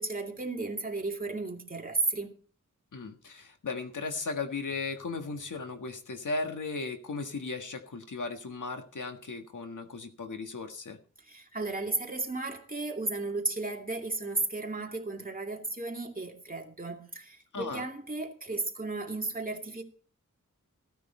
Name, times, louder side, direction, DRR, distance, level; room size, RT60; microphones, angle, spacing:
voice 1, 0.0-2.3 11.3-19.8, right 3 dB, 25° right, 2.4 m, -34 dB
voice 2, 2.9-11.0 17.5-17.8, left 4 dB, 75° left, 1.7 m, -36 dB
16.0 x 9.8 x 4.4 m
wide cardioid pair, 85°, 31 cm